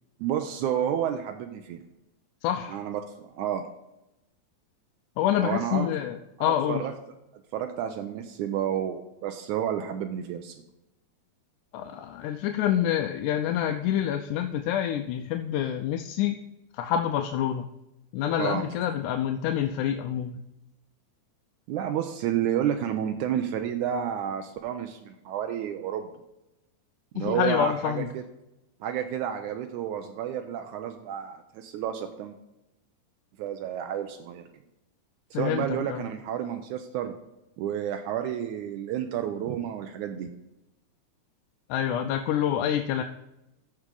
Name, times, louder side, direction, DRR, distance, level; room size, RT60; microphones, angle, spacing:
voice 1, 0.2-1.8 2.7-3.7 5.4-5.9 6.4-6.9 7.3-10.5 18.4-18.7 21.7-26.1 27.1-28.2 28.8-32.4 33.4-34.5 35.3-37.1 37.6-40.3, right 9 dB, 85° right, 5 dB, 2.1 m, -30 dB
voice 2, 2.4-2.8 5.2-6.8 11.7-16.4 16.7-17.7 18.1-20.4 27.2-28.1 35.3-36.0 41.7-43.0, left 10 dB, 85° left, 5 dB, 2.1 m, -27 dB
14.0 x 4.8 x 3.8 m, 0.92 s
omnidirectional pair, 3.5 m